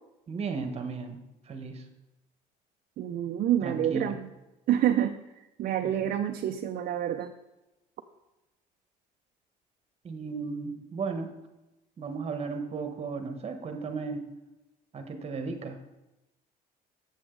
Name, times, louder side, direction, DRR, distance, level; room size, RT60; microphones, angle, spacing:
voice 1, 0.3-1.2 1.5-1.8 3.6-4.2 5.8-6.1 10.0-11.3 12.0-14.3 14.9-15.8, right 4 dB, 40° right, 6 dB, 1.1 m, -35 dB
voice 2, 3.0-4.3 4.7-5.2 5.6-7.3, right 11 dB, 60° right, 6 dB, 0.5 m, -27 dB
7.7 x 7.1 x 3.8 m, 1.0 s
cardioid pair, 110°, 17 cm